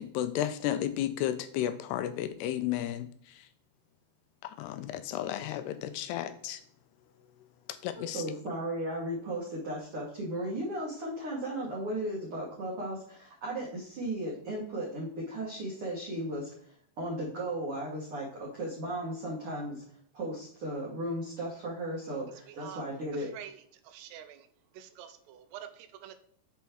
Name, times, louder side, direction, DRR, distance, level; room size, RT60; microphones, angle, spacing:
voice 1, 0.0-3.5 4.4-6.6 7.8-8.2, left 11 dB, 85° left, 11 dB, 2.6 m, -33 dB
voice 2, 7.9-16.5 17.0-19.8 20.1-23.3, right 1 dB, 60° right, -5 dB, 1.4 m, -35 dB
voice 3, 22.5-22.8 23.1-24.5 24.7-26.2, right 10 dB, 85° right, 9 dB, 2.7 m, -47 dB
7.1 x 4.5 x 4.4 m, 0.62 s
omnidirectional pair, 4.9 m